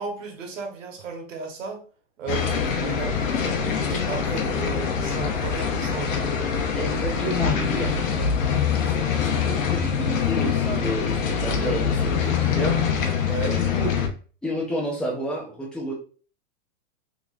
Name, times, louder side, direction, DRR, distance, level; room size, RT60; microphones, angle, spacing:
voice 1, 0.0-1.8 2.2-6.2 13.2-13.6, right 4 dB, 75° right, 3 dB, 1.3 m, -34 dB
sound 1, 2.3-14.1, left 6 dB, 85° left, 0.9 m, -24 dB
voice 2, 6.7-8.2 8.7-8.9 9.4-12.8 13.5-13.9 14.4-15.9, equal, ahead, -5 dB, 0.5 m, -30 dB
3.6 x 3.0 x 2.4 m, 0.39 s
supercardioid pair, 160°, 38 cm